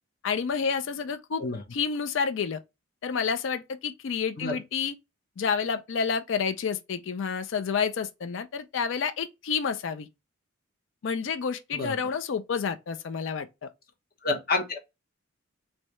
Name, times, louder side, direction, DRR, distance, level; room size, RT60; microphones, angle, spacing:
voice 1, 0.2-1.4 1.7-2.6 3.0-4.9 5.4-10.1 11.0-13.7, left 6 dB, 65° left, 0.4 m, -29 dB
voice 2, 14.2-14.8, left 3 dB, 45° left, 0.9 m, -28 dB
3.2 x 2.7 x 3.0 m
head